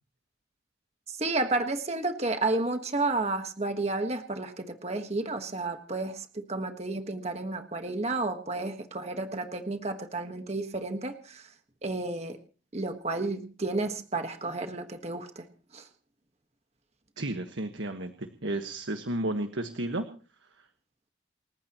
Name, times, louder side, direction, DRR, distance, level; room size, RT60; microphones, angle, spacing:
voice 1, 1.1-11.5 11.8-12.4 12.7-15.5 15.7-15.9, right 2 dB, 35° right, 6 dB, 1.5 m, -31 dB
voice 2, 17.2-20.0, right 1 dB, 80° right, 7 dB, 1.5 m, -32 dB
29.0 x 15.0 x 3.0 m, 0.39 s
head